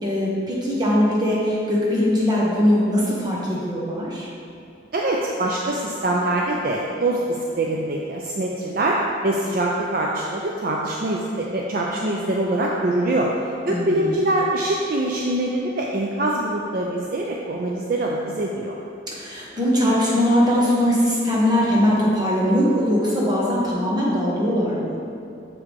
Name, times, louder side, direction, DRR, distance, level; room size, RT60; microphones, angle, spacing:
voice 1, 0.0-4.3 13.7-14.1 19.1-24.9, equal, 20° right, -5 dB, 1.1 m, -21 dB
voice 2, 4.9-9.0 9.2-13.3 13.7-18.8, right 1 dB, 50° right, -2 dB, 0.4 m, -24 dB
6.7 x 4.9 x 3.5 m, 2.5 s
head